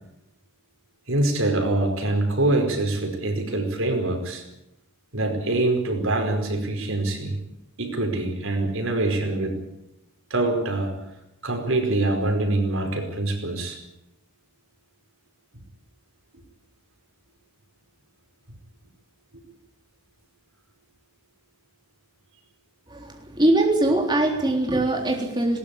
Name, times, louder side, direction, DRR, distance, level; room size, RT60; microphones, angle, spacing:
voice 1, 1.1-4.4 5.1-7.4 7.8-9.6 10.3-10.9 11.4-13.8, right 2 dB, 85° right, 4 dB, 5.0 m, -24 dB
voice 2, 22.9-25.6, right 1 dB, 20° right, 1 dB, 3.8 m, -22 dB
21.0 x 18.5 x 8.5 m, 0.86 s
head